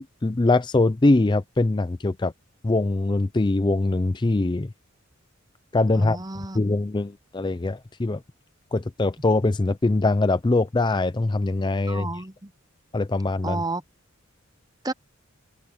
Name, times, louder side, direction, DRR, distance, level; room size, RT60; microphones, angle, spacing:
voice 1, 0.0-2.3 2.6-4.7 5.7-6.2 6.5-8.2 8.7-12.2 12.9-13.6, left 2 dB, 20° left, 0.4 m, -22 dB
voice 2, 6.0-6.6 11.9-12.5 13.4-13.8 14.8-14.9, right 2 dB, 20° right, 0.8 m, -31 dB
head